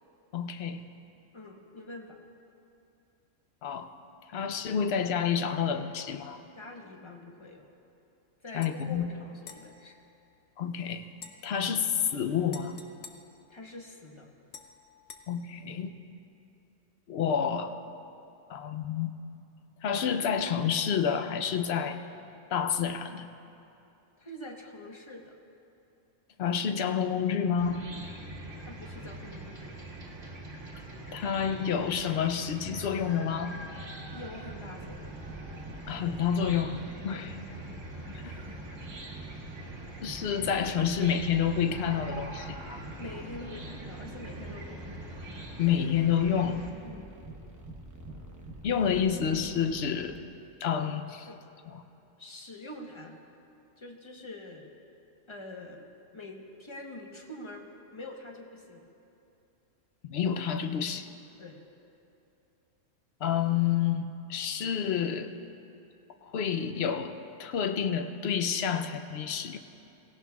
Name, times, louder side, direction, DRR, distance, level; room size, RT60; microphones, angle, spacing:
voice 1, 0.3-0.8 3.6-3.9 4.3-6.4 8.5-9.1 10.6-11.1 11.4-12.8 15.3-15.9 17.1-17.7 18.5-19.1 19.8-22.0 22.5-23.3 26.4-27.8 31.1-33.6 35.9-36.8 37.0-37.4 38.2-38.4 40.0-42.8 45.6-46.6 48.6-50.2 50.6-51.3 51.7-51.8 60.1-61.1 63.2-65.3 66.2-67.1 67.4-69.6, left 8 dB, 60° left, 8 dB, 0.8 m, -29 dB
voice 2, 1.3-2.2 6.6-7.7 8.4-9.9 13.5-14.3 24.2-25.3 28.6-29.7 34.1-35.1 37.1-37.2 43.0-44.8 46.8-47.1 51.2-51.4 52.2-53.1 53.8-54.7 55.3-58.9 61.4-61.6, left 1 dB, 25° left, 1 dB, 1.0 m, -45 dB
sound 1, 8.6-8.8 9.4-10.7 11.1-14.0 14.5-15.2, left 6 dB, 80° left, 1.1 m, -51 dB
Chicken rooster / Cricket, 27.6-46.7, right 2 dB, 60° right, 1.8 m, -43 dB
sound 2, 34.8-50.2, right 1 dB, 15° right, 0.8 m, -47 dB
17.5 x 17.0 x 2.3 m, 2.7 s
omnidirectional pair, 1.3 m